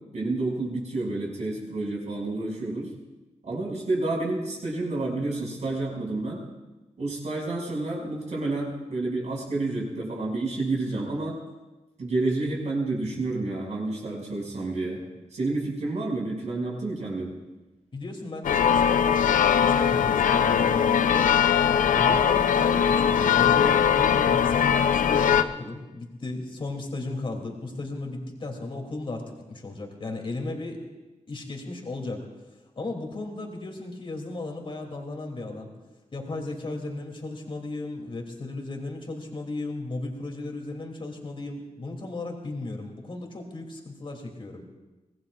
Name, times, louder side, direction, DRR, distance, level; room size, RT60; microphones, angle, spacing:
voice 1, 0.1-2.9 3.4-6.4 7.0-11.4 12.0-15.0 15.3-17.3, right 2 dB, 60° right, -2 dB, 6.2 m, -29 dB
voice 2, 17.9-21.3 22.0-30.8 31.3-32.3 32.7-35.7 36.1-44.7, left 2 dB, 40° left, 1 dB, 2.8 m, -35 dB
sound 1, 18.4-25.4, left 8 dB, 90° left, 0.6 m, -21 dB
24.5 x 19.0 x 2.5 m, 1.1 s
wide cardioid pair, 115°, 13 cm